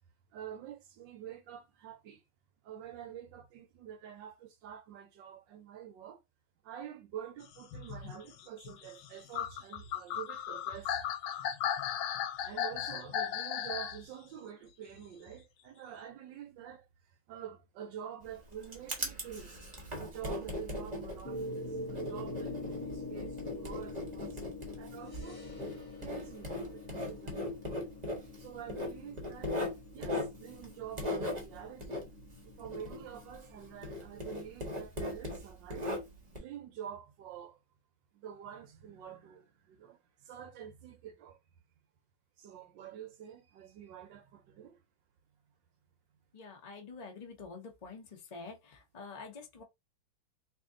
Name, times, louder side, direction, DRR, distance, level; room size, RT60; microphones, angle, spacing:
voice 1, 0.3-2.2 2.6-6.2 6.6-11.0 12.4-19.6 20.0-25.4 25.7-27.9 28.4-29.6 29.9-32.1 32.4-35.9 36.3-37.6 38.1-41.4 42.4-44.8, right 9 dB, 75° right, 1.3 m, -47 dB
sound 1, 7.6-14.0 15.3-15.4, left 9 dB, 90° left, 1.4 m, -36 dB
Writing, 18.2-33.6 33.8-36.4, left 1 dB, 30° right, 0.9 m, -39 dB
sound 2, 21.2-34.6, left 2 dB, 20° left, 0.7 m, -45 dB
voice 2, 46.3-48.0 48.3-49.6, left 4 dB, 70° left, 0.3 m, -47 dB
3.1 x 2.7 x 3.6 m
omnidirectional pair, 2.1 m